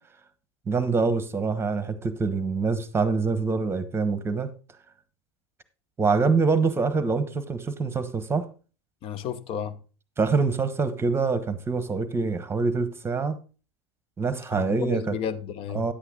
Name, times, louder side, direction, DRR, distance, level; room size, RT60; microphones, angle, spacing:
voice 1, 0.7-4.5 6.0-8.5 10.2-13.4 14.2-15.2 15.7-15.9, right 4 dB, 15° right, 1.1 m, -25 dB
voice 2, 9.0-9.8 14.5-15.9, left 8 dB, 40° left, 0.8 m, -32 dB
10.0 x 8.1 x 3.8 m
hypercardioid pair, 90°, 14 cm